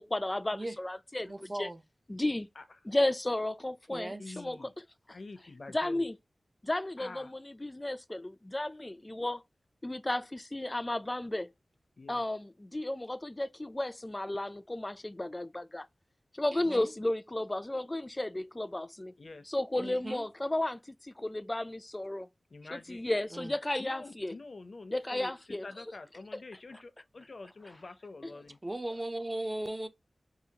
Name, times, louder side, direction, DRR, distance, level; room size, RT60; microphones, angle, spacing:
voice 1, 0.0-1.7 2.1-2.5 2.9-4.7 5.7-6.2 6.6-9.4 9.8-11.5 12.1-15.9 16.3-19.1 19.5-22.3 22.7-24.4 24.9-25.7 26.3-26.4 28.2-28.3, left 1 dB, 25° left, 0.4 m, -33 dB
voice 2, 1.2-1.8 3.9-4.4 16.5-16.9 19.8-20.3 23.3-23.5 26.7-26.8 28.6-29.9, right 1 dB, 25° right, 0.6 m, -38 dB
voice 3, 4.2-4.7 5.1-6.1 7.0-7.3 12.0-12.2 19.2-19.5 19.8-20.0 22.5-23.1 23.8-25.3 25.6-28.6, left 3 dB, 60° left, 0.7 m, -47 dB
4.8 x 2.4 x 2.8 m
wide cardioid pair, 80°, 0 cm